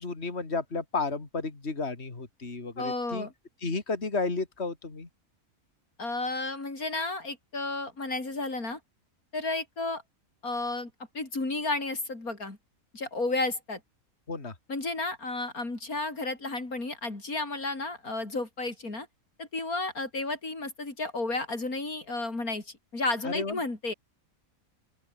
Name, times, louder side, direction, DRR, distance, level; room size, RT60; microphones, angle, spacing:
voice 1, 0.0-3.3 3.6-5.1 14.3-14.5 23.2-23.6, left 3 dB, 45° left, 3.3 m, -32 dB
voice 2, 2.8-3.3 6.0-8.8 9.3-10.0 10.4-12.6 12.9-13.8 14.7-19.1 19.4-23.9, left 2 dB, 90° left, 5.4 m, -32 dB
open air
omnidirectional pair, 1.5 m